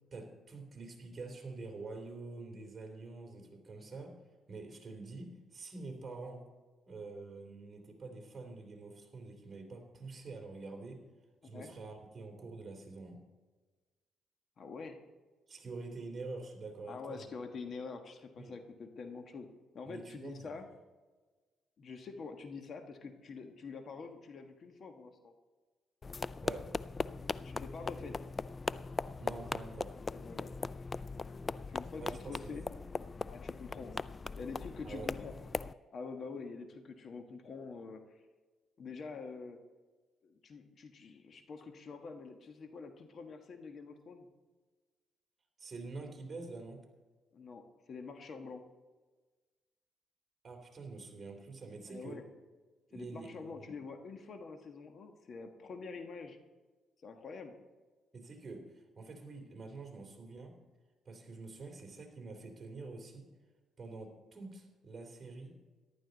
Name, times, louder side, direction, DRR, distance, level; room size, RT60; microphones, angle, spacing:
voice 1, 0.1-4.2 4.5-6.4 6.9-11.0 11.4-13.2 15.5-17.3 18.3-18.5 19.9-20.5 26.2-26.7 29.2-29.9 32.0-32.6 34.8-35.1 45.6-46.8 50.4-52.2 52.9-53.7 58.1-60.6 61.0-63.3 63.8-65.6, right 3 dB, 35° right, 2 dB, 3.1 m, -46 dB
voice 2, 14.6-15.0 16.9-19.5 19.7-20.7 21.8-25.3 27.4-28.1 30.1-30.6 31.6-32.6 33.3-33.9 34.4-35.3 35.9-38.0 38.8-39.6 40.2-44.3 47.3-47.6 47.9-48.6 51.9-52.2 52.9-56.4 57.0-57.5, left 4 dB, 55° left, 6 dB, 1.3 m, -46 dB
sound 1, 26.0-35.7, left 4 dB, 30° left, 0.3 m, -39 dB
14.0 x 11.5 x 4.0 m, 1.3 s
cardioid pair, 90°, 0 cm